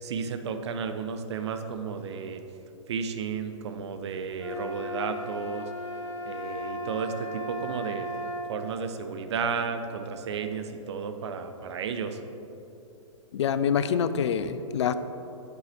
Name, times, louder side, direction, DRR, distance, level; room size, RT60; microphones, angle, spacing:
voice 1, 0.0-2.4 2.9-5.7 6.3-8.1 8.5-12.2, right 6 dB, 55° right, 8 dB, 0.6 m, -33 dB
sound 1, 4.4-8.5, equal, 80° left, 1.3 m, -35 dB
voice 2, 13.3-14.9, left 7 dB, 55° left, 12 dB, 0.4 m, -26 dB
8.3 x 4.8 x 4.2 m, 2.9 s
figure-of-eight pair, 115°, 17 cm